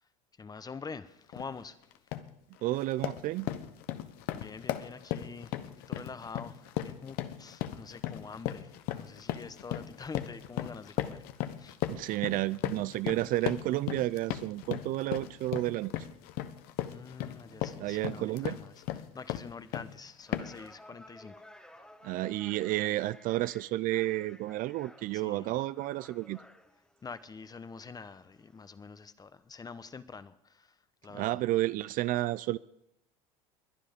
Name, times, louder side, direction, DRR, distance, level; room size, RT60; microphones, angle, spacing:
voice 1, 0.4-2.0 4.3-11.2 11.6-11.8 16.9-21.4 25.1-25.6 27.0-30.8 31.0-31.4, left 5 dB, 20° left, 1.0 m, -46 dB
sound 1, 1.3-1.5 1.9-2.3 2.7-20.0 20.3-20.7, left 12 dB, 65° left, 1.1 m, -37 dB
voice 2, 2.6-3.5 11.9-15.9 17.8-18.6 22.0-26.4 31.1-32.6, right 16 dB, 55° right, 0.5 m, -31 dB
sound 2, 19.6-28.7, left 1 dB, 5° left, 1.4 m, -56 dB
21.5 x 9.9 x 5.2 m
hypercardioid pair, 90°, 17 cm